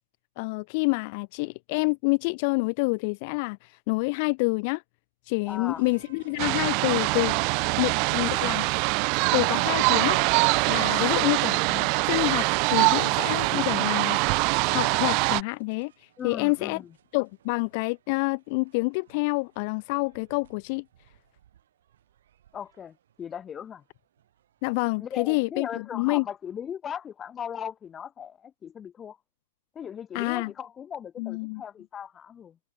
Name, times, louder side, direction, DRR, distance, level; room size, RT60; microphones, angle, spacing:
voice 1, 0.4-4.8 5.3-7.4 7.8-8.7 9.3-10.2 10.7-14.2 14.7-15.9 16.2-16.8 17.1-20.8 24.6-26.2 30.1-30.5 31.2-31.6, left 29 dB, 45° left, 0.4 m, -27 dB
voice 2, 5.5-5.8 7.8-8.1 10.9-11.2 16.2-16.9 22.5-23.8 25.0-29.2 29.7-32.6, left 8 dB, 20° left, 0.9 m, -38 dB
sound 1, 5.5-24.9, right 11 dB, 65° right, 7.4 m, -56 dB
sound 2, 6.4-15.4, right 34 dB, 40° right, 0.6 m, -24 dB
hypercardioid pair, 125°, 0 cm